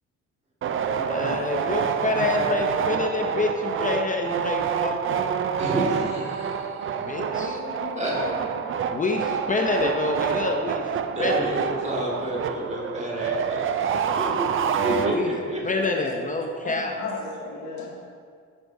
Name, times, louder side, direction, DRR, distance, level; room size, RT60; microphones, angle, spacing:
sound 1, 0.6-15.6, right 7 dB, 45° right, 0.4 m, -27 dB
voice 1, 1.0-5.4 7.0-7.6 8.9-10.9 11.2-11.5 15.0-15.3 15.6-17.0, left 3 dB, 25° left, 3 dB, 0.6 m, -27 dB
voice 2, 5.6-6.9 8.0-8.2 11.1-14.5 14.8-16.0, right 1 dB, 20° right, -3 dB, 1.9 m, -30 dB
voice 3, 7.1-8.1 14.7-15.1 15.8-16.1 16.6-17.9, left 4 dB, 70° left, -3 dB, 1.7 m, -35 dB
9.5 x 6.1 x 2.7 m, 2.2 s
cardioid pair, 90°, 30 cm